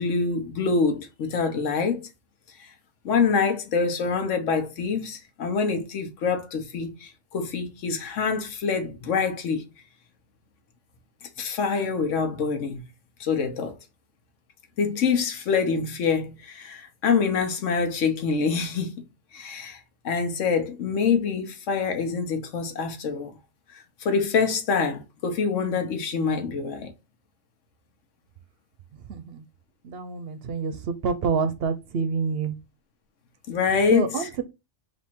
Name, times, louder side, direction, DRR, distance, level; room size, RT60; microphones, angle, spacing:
voice 1, 0.0-2.1 2.6-2.7 3.0-9.6 11.4-12.8 13.2-13.8 14.8-18.9 19.3-19.8 20.0-23.3 23.7-26.9 33.5-34.3, left 5 dB, 85° left, 1.2 m, -25 dB
voice 2, 29.1-29.4 29.8-32.5 33.9-34.4, right 5 dB, 60° right, 0.7 m, -27 dB
3.5 x 2.6 x 4.3 m
omnidirectional pair, 1.3 m